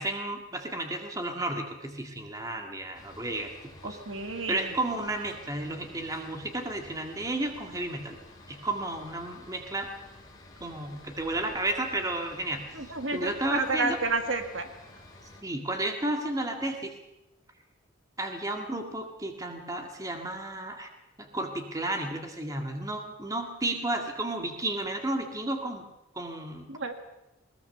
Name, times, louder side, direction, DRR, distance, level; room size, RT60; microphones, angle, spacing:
voice 1, 0.0-3.5 3.8-4.0 4.5-8.2 8.5-9.9 10.6-12.6 13.1-14.0 15.4-16.9 18.2-20.9 21.2-25.8 26.2-26.6, right 1 dB, 15° right, 4 dB, 2.0 m, -32 dB
sound 1, 2.9-15.4, left 2 dB, 20° left, 3.6 m, -51 dB
voice 2, 3.8-4.7 12.7-14.7 26.7-26.9, right 3 dB, 65° right, 6 dB, 1.8 m, -30 dB
20.5 x 20.0 x 6.9 m, 0.90 s
head